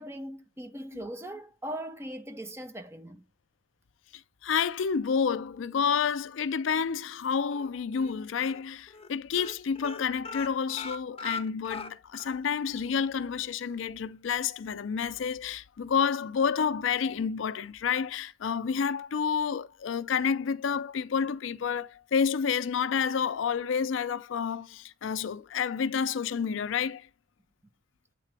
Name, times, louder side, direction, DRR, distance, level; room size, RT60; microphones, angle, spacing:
voice 1, 0.0-3.2, right 1 dB, 15° right, 0.6 m, -40 dB
voice 2, 4.1-27.1, left 6 dB, 75° left, 0.4 m, -29 dB
sound 1, 7.5-8.1 8.4-8.6 8.9-9.1 9.3-12.4 12.7-12.8 13.2-13.3, left 4 dB, 30° left, 0.6 m, -39 dB
8.3 x 3.8 x 3.2 m
head